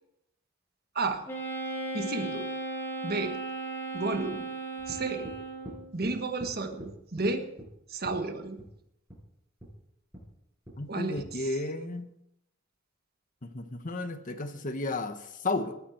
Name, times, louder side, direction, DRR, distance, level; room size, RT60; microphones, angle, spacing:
Wind instrument woodwind instrument, 1.3-5.9, right 3 dB, 10° left, 2.7 m, -36 dB
voice 1, 1.9-2.5 3.0-3.4 3.9-4.4 4.9-5.3 5.9-7.5 7.9-8.6 10.9-11.6, right 3 dB, 50° right, 7 dB, 1.4 m, -32 dB
sound 1, 4.9-5.4 5.6-6.1 6.4-6.5 6.8-7.3 7.6-7.7 8.0-8.2 8.6-8.7 9.1-9.2 9.6-9.7 10.1-10.3 10.7-10.8 11.2-11.3, right 1 dB, 20° right, 6.8 m, -44 dB
voice 2, 10.8-12.1 13.4-15.7, left 2 dB, 40° left, 8 dB, 1.2 m, -33 dB
19.5 x 9.7 x 4.6 m, 0.78 s
head